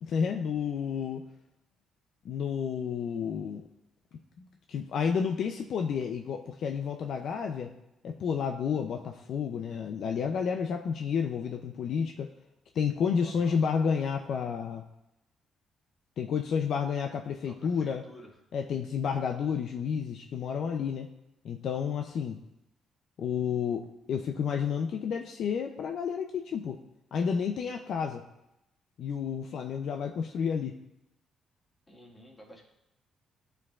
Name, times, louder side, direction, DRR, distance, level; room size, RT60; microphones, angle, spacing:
voice 1, 0.0-1.2 2.2-3.6 4.4-7.7 8.0-12.3 12.7-14.8 16.2-18.0 18.5-21.1 21.4-22.4 23.2-26.8 27.1-28.2 29.0-30.8, left 6 dB, 65° left, 4 dB, 0.4 m, -31 dB
voice 2, 13.2-13.6 17.5-18.4 31.9-32.6, equal, 25° left, -2 dB, 1.9 m, -51 dB
11.0 x 4.6 x 2.4 m, 0.87 s
cardioid pair, 90°, 0 cm